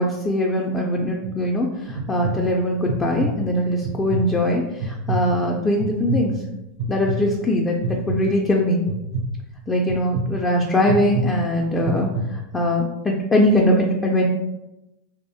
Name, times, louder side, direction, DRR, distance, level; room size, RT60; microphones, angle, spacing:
voice 1, 0.0-6.3 6.9-7.7 8.1-8.8 9.7-12.1 12.5-14.3, left 1 dB, 15° left, -1 dB, 0.4 m, -21 dB
sound 1, 1.0-1.3 1.9-2.3 2.9-3.3 3.8-4.3 4.8-5.2 5.8-6.2 6.8-7.2 7.8-8.2 8.9-9.2 9.9-10.2 10.9-11.2 11.8-12.2, right 3 dB, 50° right, 0.4 m, -25 dB
3.0 x 2.0 x 2.7 m, 0.93 s
supercardioid pair, 120°, 0 cm